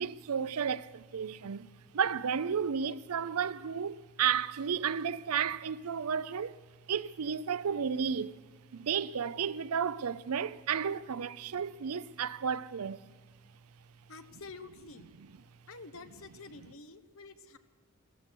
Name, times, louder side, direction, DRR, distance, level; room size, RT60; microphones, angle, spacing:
voice 1, 0.0-1.7 1.9-6.6 6.9-8.4 8.7-13.0, right 7 dB, 85° right, 0.5 m, -32 dB
voice 2, 14.1-15.1 15.7-17.6, left 3 dB, 65° left, 1.1 m, -49 dB
16.0 x 14.5 x 6.1 m
head